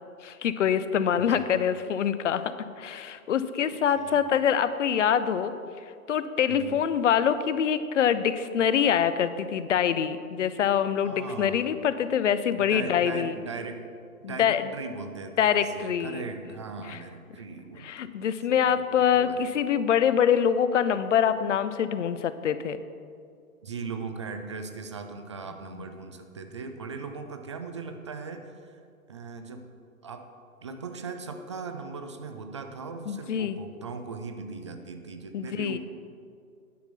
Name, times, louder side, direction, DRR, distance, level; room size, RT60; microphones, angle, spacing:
voice 1, 0.2-5.5 6.1-13.3 14.2-14.6 15.4-16.2 16.9-17.0 17.8-22.8 33.1-33.6 35.3-35.8, left 8 dB, 55° left, 12 dB, 0.7 m, -25 dB
voice 2, 1.2-1.5 3.9-4.2 6.5-6.8 11.0-11.7 12.6-13.8 14.3-18.1 18.5-19.5 23.6-28.8 29.1-29.6 30.0-30.2 30.6-35.8, right 4 dB, 20° right, 6 dB, 0.4 m, -39 dB
10.5 x 5.9 x 6.9 m, 2.3 s
figure-of-eight pair, 120°, 43 cm